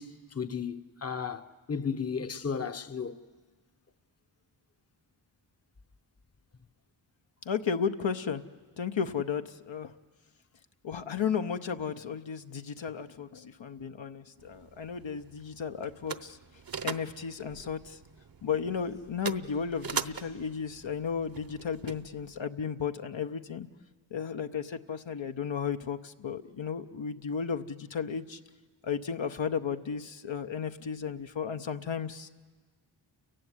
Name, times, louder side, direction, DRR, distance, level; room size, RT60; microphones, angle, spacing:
voice 1, 0.0-3.2, left 6 dB, 30° left, 0.9 m, -34 dB
voice 2, 7.5-8.4 8.8-9.9 10.8-16.4 16.8-18.0 18.4-23.7 24.1-28.4 28.8-32.3, left 6 dB, 65° left, 0.9 m, -34 dB
sound 1, 14.4-22.4, right 5 dB, 45° right, 1.0 m, -41 dB
29.5 x 15.5 x 9.7 m
wide cardioid pair, 55°, 49 cm